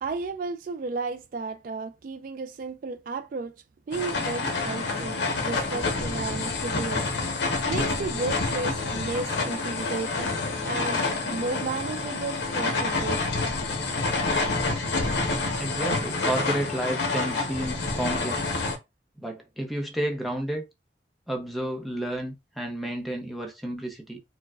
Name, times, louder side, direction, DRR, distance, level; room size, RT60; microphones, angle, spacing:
voice 1, 0.0-3.5 3.9-7.1 7.7-10.3 10.6-13.4, right 3 dB, 50° right, 0.3 m, -33 dB
sound 1, 3.9-18.8, left 3 dB, 75° left, 0.8 m, -28 dB
voice 2, 15.6-18.6 19.2-20.6 21.3-24.2, right 1 dB, ahead, 0.6 m, -31 dB
4.5 x 2.1 x 2.4 m
head